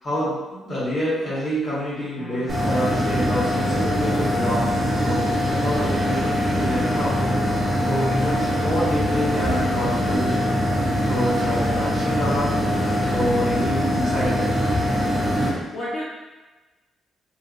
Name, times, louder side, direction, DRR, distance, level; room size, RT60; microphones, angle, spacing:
voice 1, 0.0-7.2 7.9-10.5 11.1-12.6 13.1-14.5, equal, 35° left, -9 dB, 1.5 m, -27 dB
sound 1, 2.2-8.4, equal, 10° left, 0.9 m, -40 dB
sound 2, 2.5-15.5, equal, 25° right, 0.8 m, -22 dB
voice 2, 15.4-16.0, left 1 dB, 55° left, -9 dB, 0.6 m, -32 dB
3.2 x 2.5 x 2.6 m, 1.2 s
cardioid pair, 130°, 0 cm